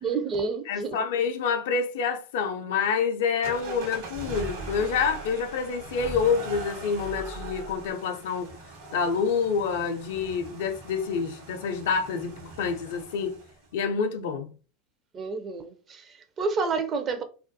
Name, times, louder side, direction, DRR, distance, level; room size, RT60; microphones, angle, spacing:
voice 1, 0.0-1.0 15.1-17.2, right 4 dB, 35° right, 0.4 m, -29 dB
voice 2, 0.7-8.5 8.9-13.4 13.7-14.5, left 5 dB, 70° left, 0.4 m, -27 dB
sound 1, 3.4-13.7, right 2 dB, 60° right, 1.1 m, -40 dB
2.3 x 2.2 x 2.5 m
hypercardioid pair, 85°, 0 cm